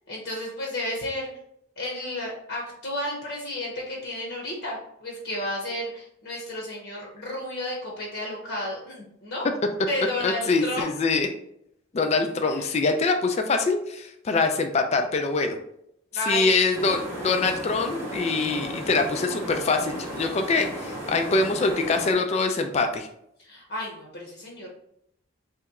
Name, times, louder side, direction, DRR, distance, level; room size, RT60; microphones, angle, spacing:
voice 1, 0.1-1.3 1.8-9.5 9.9-10.9 12.4-12.7 16.1-16.6 23.4-24.7, left 1 dB, 60° left, -3 dB, 0.9 m, -32 dB
voice 2, 10.2-11.3 11.9-15.6 16.3-23.1, left 3 dB, 30° left, 5 dB, 0.3 m, -24 dB
sound 1, 16.7-22.1, equal, 15° right, 1.0 m, -35 dB
3.3 x 3.0 x 3.5 m, 0.76 s
head